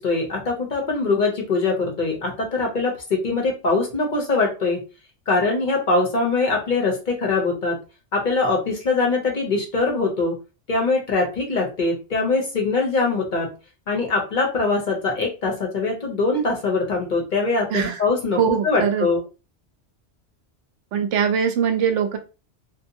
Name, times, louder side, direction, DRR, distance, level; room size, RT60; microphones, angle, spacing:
voice 1, 0.0-4.8 5.3-7.8 8.1-10.4 10.7-13.5 13.9-19.2, left 3 dB, 45° left, 0 dB, 0.8 m, -22 dB
voice 2, 18.4-19.1 20.9-22.2, right 7 dB, 90° right, 7 dB, 0.9 m, -22 dB
2.7 x 2.2 x 2.6 m, 0.31 s
omnidirectional pair, 1.2 m